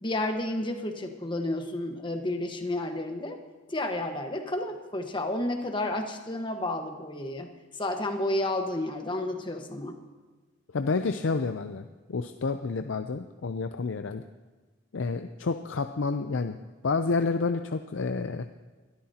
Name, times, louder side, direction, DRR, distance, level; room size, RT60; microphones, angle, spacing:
voice 1, 0.0-3.4 3.7-7.5 7.8-10.0, left 1 dB, 25° left, 4 dB, 1.3 m, -31 dB
voice 2, 10.7-14.2 14.9-16.6 16.8-18.5, left 4 dB, 75° left, 8 dB, 0.5 m, -29 dB
22.5 x 12.5 x 2.9 m, 1.3 s
head